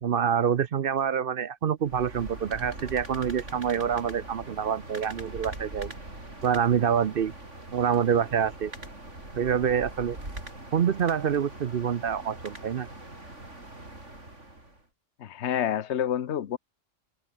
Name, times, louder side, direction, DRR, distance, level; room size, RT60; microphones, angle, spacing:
voice 1, 0.0-5.9 6.4-7.3 7.7-8.7 9.4-10.2 10.7-12.9, right 8 dB, 55° right, 0.8 m, -26 dB
sound 1, 1.8-14.8, right 2 dB, 70° right, 6.6 m, -42 dB
voice 2, 15.2-16.6, left 10 dB, 60° left, 1.2 m, -28 dB
open air
omnidirectional pair, 1.3 m